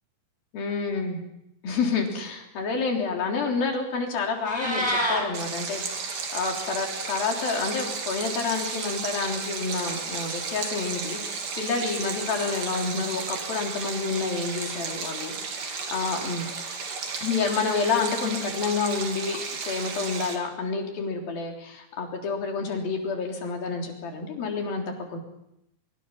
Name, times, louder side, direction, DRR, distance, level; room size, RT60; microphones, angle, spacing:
voice 1, 0.5-1.2 1.6-16.5 17.2-24.8 25.1-25.2, left 4 dB, 65° left, 1 dB, 5.3 m, -29 dB
Meow, 4.2-5.2, equal, 5° right, 6.3 m, -26 dB
Stream, 5.3-20.4, right 5 dB, 60° right, 4.3 m, -34 dB
24.0 x 23.0 x 5.9 m, 0.82 s
omnidirectional pair, 4.5 m